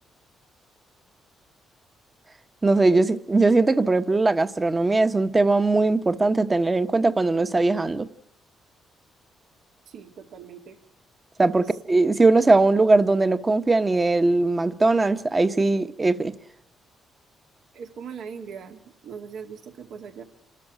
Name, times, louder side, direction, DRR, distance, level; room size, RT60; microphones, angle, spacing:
voice 1, 2.6-8.1 11.4-16.3, right 3 dB, 25° right, 1.1 m, -20 dB
voice 2, 9.9-10.8 11.5-11.7 17.7-20.2, right 6 dB, 75° right, 2.2 m, -40 dB
27.5 x 13.0 x 9.1 m
cardioid pair, 90°, 0 cm